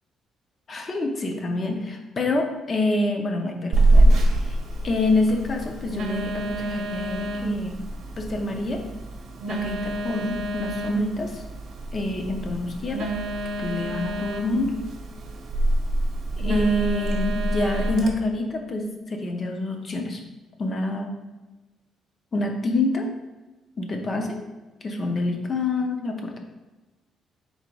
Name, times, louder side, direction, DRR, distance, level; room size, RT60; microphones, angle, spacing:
voice 1, 0.7-4.2 4.5-4.6 4.8-7.8 8.2-8.8 9.5-11.4 11.9-13.1 13.6-14.7 16.4-20.2 20.6-21.1 22.3-23.1 23.8-24.4 24.8-26.4, left 2 dB, 30° left, 3 dB, 0.6 m, -27 dB
Telephone, 3.7-18.1, right 1 dB, 65° right, 0.8 m, -25 dB
4.0 x 2.8 x 4.6 m, 1.2 s
cardioid pair, 165°, 0 cm